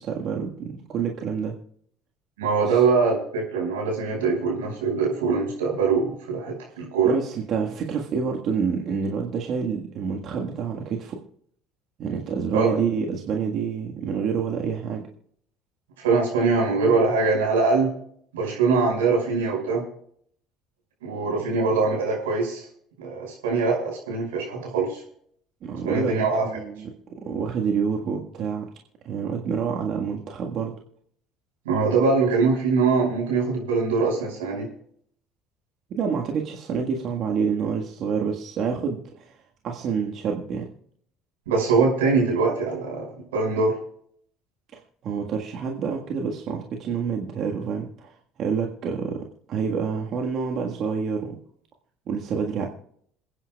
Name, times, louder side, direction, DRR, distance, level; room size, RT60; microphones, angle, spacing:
voice 1, 0.0-1.6 2.6-2.8 7.0-11.2 12.0-15.0 25.6-26.1 26.4-28.7 29.0-30.8 35.9-39.4 39.6-40.7 44.7-51.4 52.1-52.7, right 6 dB, 55° right, 1 dB, 1.6 m, -28 dB
voice 2, 2.4-7.2 12.5-12.8 16.0-17.9 18.3-19.8 21.0-22.7 23.0-25.0 25.8-26.5 31.7-34.7 41.5-43.7, right 4 dB, 85° right, 0 dB, 5.4 m, -23 dB
27.5 x 9.8 x 2.3 m, 0.64 s
hypercardioid pair, 70°, 0 cm